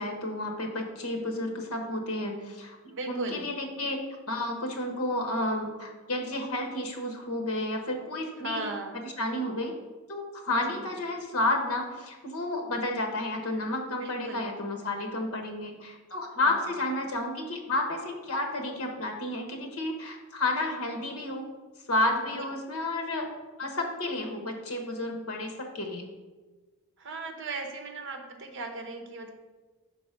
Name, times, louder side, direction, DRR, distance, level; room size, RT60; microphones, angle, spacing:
voice 1, 0.0-4.0 4.3-8.6 9.0-9.7 10.1-21.5 21.9-23.3 23.6-26.0, left 1 dB, 75° left, 3 dB, 1.1 m, -31 dB
voice 2, 2.9-3.5 8.4-9.0 10.6-10.9 14.0-14.5 16.4-16.8 22.3-22.4 27.0-29.3, right 2 dB, 55° right, 3 dB, 0.9 m, -37 dB
5.8 x 4.0 x 5.1 m, 1.3 s
head